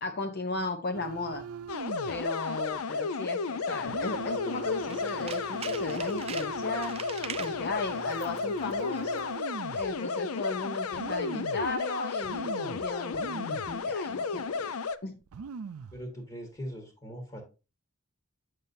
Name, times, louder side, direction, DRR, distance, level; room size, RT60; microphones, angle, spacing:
voice 1, 0.0-1.4 2.1-7.0 7.4-9.3 9.7-14.7 15.0-15.2, left 3 dB, 50° left, 6 dB, 0.6 m, -35 dB
sound 1, 0.9-2.3 2.6-2.8 3.9-9.9 10.5-10.6 10.9-11.8 12.2-13.8 14.1-14.2 14.9-15.0 15.2-16.0 16.6-16.8, right 5 dB, 90° right, 0.4 m, -42 dB
sound 2, 1.7-15.0, left 4 dB, 90° left, 0.5 m, -33 dB
Tools, 4.8-7.6 8.1-8.4 8.7-8.8, right 8 dB, 30° right, 0.3 m, -42 dB
voice 2, 15.9-17.4, equal, 20° left, 3 dB, 1.4 m, -40 dB
8.3 x 6.7 x 2.7 m, 0.31 s
head